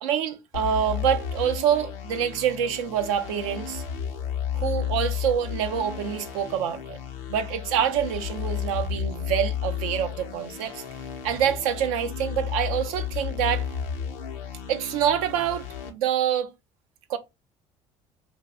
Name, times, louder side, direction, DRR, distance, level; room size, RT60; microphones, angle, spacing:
voice 1, 0.0-3.8 4.5-7.0 7.3-10.8 11.2-13.7 14.7-16.5 17.1-17.2, right 9 dB, 80° right, 0.4 m, -26 dB
sound 1, 0.5-15.9, left 8 dB, 85° left, 0.5 m, -33 dB
2.4 x 2.0 x 3.5 m
hypercardioid pair, 60°, 17 cm